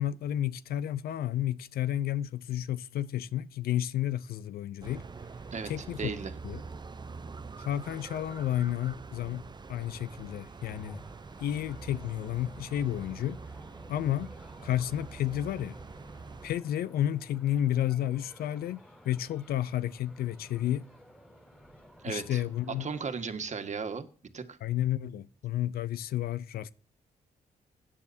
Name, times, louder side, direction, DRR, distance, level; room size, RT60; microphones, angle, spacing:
voice 1, 0.0-5.0 5.7-6.1 6.4-6.6 7.6-9.4 9.7-11.0 11.4-13.4 13.9-14.3 14.6-15.8 16.4-20.9 22.1-22.9 24.6-26.7, left 12 dB, 80° left, 0.6 m, -31 dB
sound 1, 4.8-16.6, right 4 dB, 30° right, 0.7 m, -45 dB
voice 2, 6.0-6.3 22.0-22.4 22.8-24.1 24.3-24.6, right 5 dB, 50° right, 1.6 m, -35 dB
sound 2, 10.6-23.1, equal, 10° left, 5.7 m, -55 dB
16.5 x 9.9 x 2.7 m
cardioid pair, 70°, 15 cm